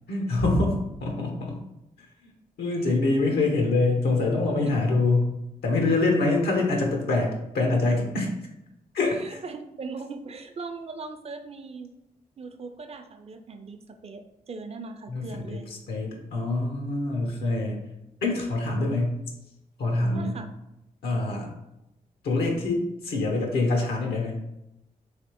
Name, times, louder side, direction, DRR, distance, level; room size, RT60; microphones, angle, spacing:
voice 1, 0.1-1.6 2.2-2.3 2.6-5.3 5.6-8.3 8.9-9.4 15.1-17.8 18.2-19.1 19.8-20.4 21.0-21.5 22.2-24.4, left 2 dB, 80° left, 1 dB, 0.6 m, -25 dB
voice 2, 9.2-11.9 12.4-15.7 20.1-20.5, right 4 dB, 40° right, 7 dB, 0.4 m, -39 dB
3.2 x 2.9 x 2.9 m, 0.88 s
supercardioid pair, 50°, 16 cm